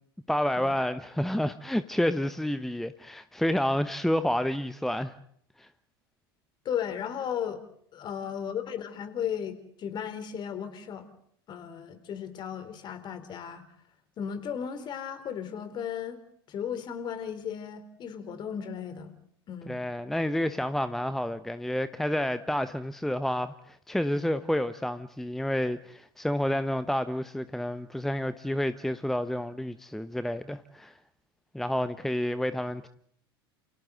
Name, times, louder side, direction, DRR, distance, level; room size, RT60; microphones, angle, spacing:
voice 1, 0.3-5.1 5.6-5.7 19.7-31.0 31.5-32.9, left 1 dB, ahead, 0.9 m, -29 dB
voice 2, 6.6-7.6 7.9-11.1 11.5-13.6 14.2-16.2 16.5-19.1 19.5-19.8, left 8 dB, 35° left, 3.3 m, -35 dB
29.5 x 29.0 x 3.9 m
figure-of-eight pair, 80°, 13 cm